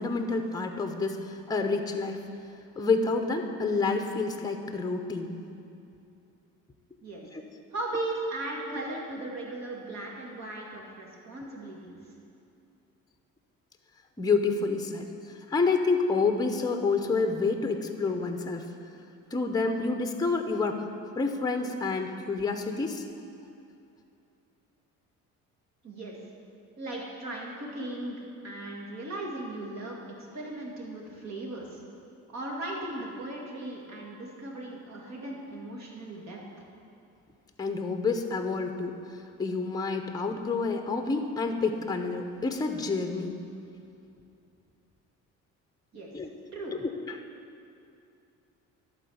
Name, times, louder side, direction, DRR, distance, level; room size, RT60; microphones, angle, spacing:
voice 1, 0.0-2.2 2.8-5.4 7.3-7.4 14.2-15.1 15.5-18.7 19.3-20.8 21.1-23.0 37.6-39.0 39.4-43.4 46.1-46.3 46.7-47.2, left 4 dB, 10° left, 5 dB, 0.7 m, -28 dB
voice 2, 7.7-12.0 25.8-26.1 26.8-28.2 28.4-31.8 32.3-36.6 45.9-46.1 46.5-46.8, right 2 dB, 55° right, -2 dB, 2.2 m, -37 dB
11.5 x 4.3 x 7.0 m, 2.6 s
cardioid pair, 95°, 32 cm